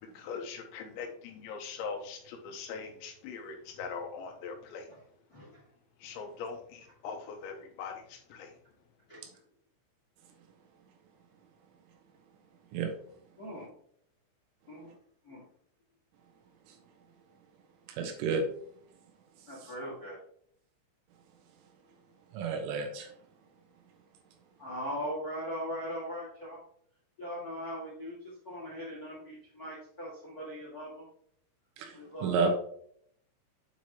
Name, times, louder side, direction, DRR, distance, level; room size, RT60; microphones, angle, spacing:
voice 1, 0.0-4.9 6.0-8.5, left 5 dB, 80° left, 4 dB, 3.0 m, -41 dB
voice 2, 5.3-5.7 9.1-9.2 13.4-13.7 14.7-14.9 15.2-15.4 19.5-20.2 24.6-26.6 27.2-31.1 31.9-32.5, equal, 50° left, -6 dB, 1.0 m, -40 dB
voice 3, 17.9-18.5 22.3-23.1 31.8-32.0 32.2-32.5, right 5 dB, 80° right, 5 dB, 3.6 m, -30 dB
8.9 x 4.9 x 2.9 m, 0.64 s
omnidirectional pair, 5.7 m